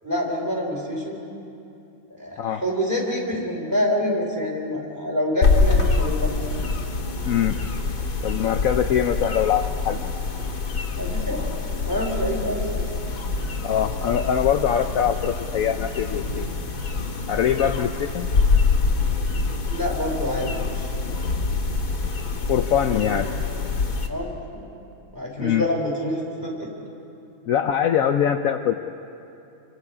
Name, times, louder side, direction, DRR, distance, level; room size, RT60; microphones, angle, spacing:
voice 1, 0.0-1.2 2.1-6.3 11.0-11.5 11.8-12.9 19.7-21.1 22.9-23.1 24.1-24.6 25.1-26.7, left 1 dB, 10° right, -2 dB, 4.7 m, -27 dB
sound 1, 5.4-24.1, left 4 dB, 50° left, 2.2 m, -25 dB
voice 2, 7.2-7.6 8.2-10.0 13.6-16.5 17.3-18.3 22.5-23.3 25.4-25.6 27.5-28.7, left 9 dB, 70° left, 6 dB, 0.8 m, -23 dB
28.5 x 24.0 x 4.9 m, 2.7 s
omnidirectional pair, 2.2 m